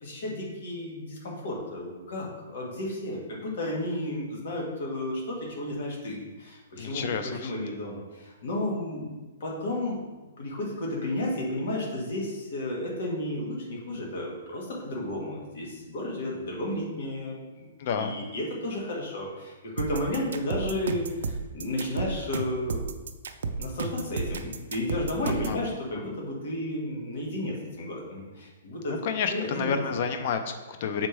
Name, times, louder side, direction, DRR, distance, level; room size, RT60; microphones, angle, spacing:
voice 1, 0.0-9.1 9.4-10.0 10.4-17.7 18.0-23.0 23.6-29.0 29.3-30.0, left 1 dB, 50° left, -2 dB, 1.6 m, -32 dB
voice 2, 6.8-7.5 17.8-18.1 25.5-25.6 29.0-31.1, left 6 dB, 35° left, 8 dB, 0.4 m, -30 dB
sound 1, 19.8-25.6, right 4 dB, 70° right, 0.4 m, -32 dB
6.4 x 4.3 x 3.4 m, 1.2 s
hypercardioid pair, 180°, 0 cm